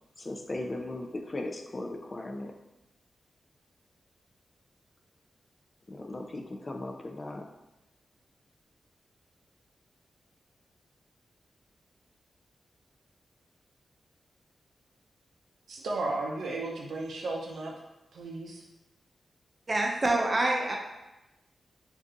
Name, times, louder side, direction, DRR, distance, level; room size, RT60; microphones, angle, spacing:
voice 1, 0.2-2.5 5.9-7.5, left 2 dB, 35° left, 3 dB, 0.4 m, -37 dB
voice 2, 15.7-17.7 18.1-18.6, right 2 dB, 85° right, 0 dB, 0.5 m, -34 dB
voice 3, 19.7-20.8, right 2 dB, 30° right, 1 dB, 0.6 m, -26 dB
2.5 x 2.3 x 3.8 m, 0.97 s
cardioid pair, 80°, 0 cm